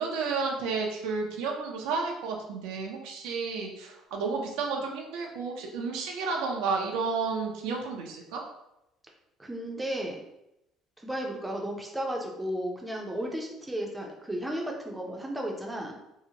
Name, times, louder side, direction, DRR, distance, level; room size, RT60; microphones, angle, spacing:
voice 1, 0.0-8.4, right 4 dB, 85° right, 0 dB, 0.5 m, -31 dB
voice 2, 9.4-10.2 11.0-16.0, equal, 10° right, 0 dB, 0.5 m, -34 dB
2.7 x 2.1 x 2.7 m, 0.86 s
cardioid pair, 95°, 0 cm